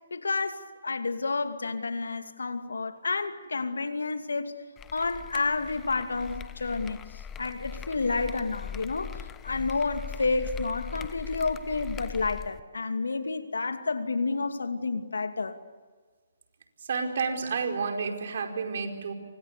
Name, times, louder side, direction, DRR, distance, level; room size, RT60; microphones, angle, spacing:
voice 1, 0.1-4.6 4.9-15.6, left 3 dB, 80° left, 2.6 m, -30 dB
sound 1, 4.8-12.6, left 8 dB, 15° left, 1.0 m, -41 dB
voice 2, 16.9-19.1, right 5 dB, 60° right, 4.8 m, -30 dB
30.0 x 25.0 x 6.9 m
hypercardioid pair, 145°, 0 cm